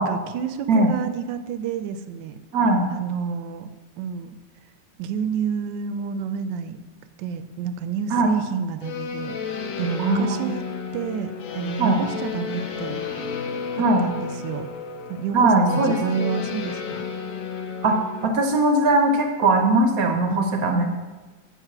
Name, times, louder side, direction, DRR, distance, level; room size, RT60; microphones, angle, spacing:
voice 1, 0.0-2.4 2.9-3.7 4.0-4.4 5.0-6.8 7.2-10.7 10.9-13.0 13.7-14.7 15.1-17.1 20.3-20.5 20.7-20.9, right 7 dB, 80° right, 11 dB, 1.3 m, -29 dB
voice 2, 2.5-2.8 8.1-8.3 10.0-10.4 11.8-12.0 13.8-14.0 15.3-16.0 17.8-20.9, right 2 dB, 60° right, 4 dB, 1.0 m, -20 dB
sound 1, 8.8-18.3, left 6 dB, 60° left, 0.9 m, -32 dB
7.4 x 5.2 x 5.9 m, 1.3 s
omnidirectional pair, 2.0 m